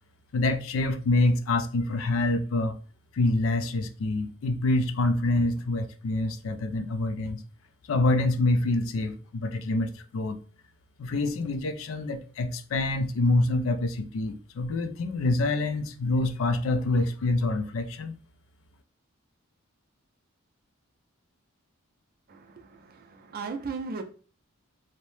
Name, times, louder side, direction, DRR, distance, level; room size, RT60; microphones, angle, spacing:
voice 1, 0.3-2.8 3.1-7.4 7.9-10.4 11.0-18.1, left 2 dB, 65° left, 0.3 m, -26 dB
voice 2, 22.3-24.0, right 4 dB, 45° right, 0.4 m, -37 dB
2.7 x 2.1 x 3.1 m
head